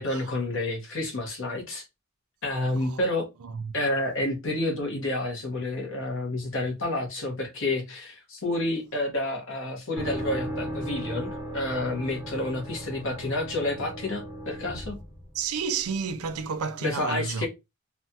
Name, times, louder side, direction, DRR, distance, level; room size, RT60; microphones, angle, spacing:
voice 1, 0.0-1.8 2.4-3.3 3.7-15.0 16.8-17.5, left 2 dB, 60° left, 1.1 m, -29 dB
voice 2, 3.4-3.7 15.3-17.5, right 6 dB, 85° right, 0.5 m, -31 dB
sound 1, 10.0-15.9, right 1 dB, 15° right, 0.6 m, -36 dB
3.3 x 2.3 x 2.7 m
head